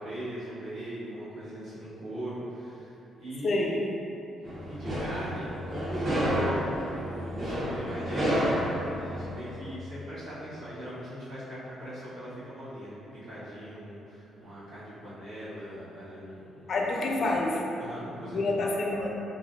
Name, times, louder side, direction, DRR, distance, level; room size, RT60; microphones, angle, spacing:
voice 1, 0.0-2.9 3.2-3.8 4.7-8.3 8.9-16.8 17.2-17.3 17.8-18.7, equal, 70° right, -12 dB, 1.4 m, -40 dB
voice 2, 3.4-3.8 16.7-17.6 18.3-19.1, left 2 dB, 55° left, -1 dB, 0.4 m, -27 dB
sound 1, 4.4-9.6, equal, 40° right, 0.9 m, -30 dB
3.1 x 2.6 x 2.5 m, 2.8 s
cardioid pair, 90°, 0 cm